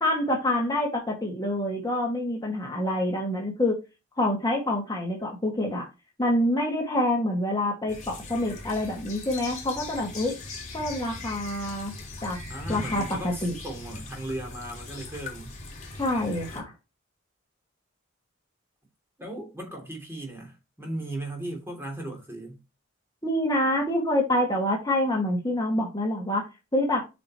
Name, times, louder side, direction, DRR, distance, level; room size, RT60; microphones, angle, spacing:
voice 1, 0.0-3.8 4.2-5.9 6.2-10.4 10.7-11.9 12.2-12.4 12.7-13.6 16.0-16.7 23.2-27.0, left 1 dB, 20° left, 2.1 m, -26 dB
sound 1, 7.9-16.6, left 3 dB, 35° left, 3.2 m, -40 dB
voice 2, 12.5-15.5 19.2-22.6, right 1 dB, 10° right, 3.0 m, -37 dB
8.5 x 5.1 x 3.1 m
head